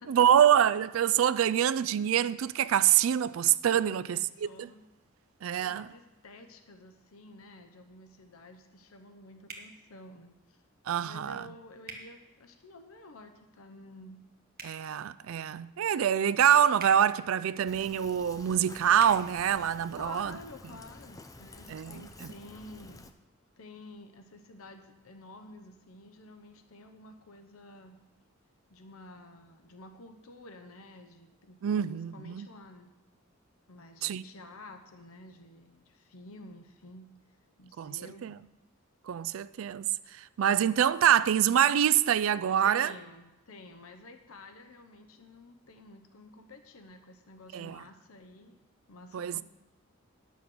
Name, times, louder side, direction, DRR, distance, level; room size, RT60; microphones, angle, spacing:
voice 1, 0.1-4.7 5.4-5.9 10.9-11.4 14.6-20.3 21.7-22.3 31.6-32.5 34.0-34.2 37.8-38.0 38.2-38.4 39.1-39.9 40.2-42.9 47.5-47.8 49.1-49.4, right 9 dB, 65° right, 0.3 m, -25 dB
voice 2, 3.7-4.8 5.6-10.6 11.0-14.2 20.0-23.1 23.6-28.0 28.7-31.9 32.1-32.9 33.7-38.3 42.6-48.6 48.9-49.4, left 2 dB, 80° left, 0.9 m, -50 dB
sound 1, 9.5-9.7 11.8-12.0 14.5-14.8 16.8-17.0 19.0-19.2, right 4 dB, 45° right, 1.4 m, -43 dB
Fill (with liquid), 17.7-23.1, left 2 dB, 15° left, 0.6 m, -50 dB
10.0 x 7.2 x 6.1 m
head